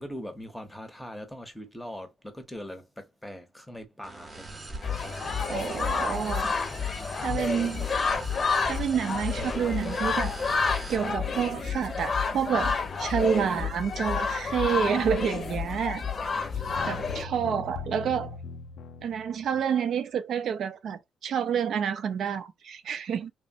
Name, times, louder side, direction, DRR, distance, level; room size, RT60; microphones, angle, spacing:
voice 1, 0.0-4.7 7.3-8.0 16.8-17.6 19.5-19.6, equal, 5° left, 0.7 m, -42 dB
sound 1, 4.0-11.1, right 2 dB, 30° right, 0.7 m, -42 dB
sound 2, 4.8-17.2, left 5 dB, 45° left, 0.6 m, -29 dB
voice 2, 5.5-6.5 7.2-7.9 8.7-10.4 10.9-16.0 16.9-18.3 19.0-23.3, right 7 dB, 65° right, 0.5 m, -29 dB
sound 3, 16.5-19.6, left 5 dB, 85° left, 0.4 m, -40 dB
3.0 x 2.1 x 2.6 m
cardioid pair, 90°, 0 cm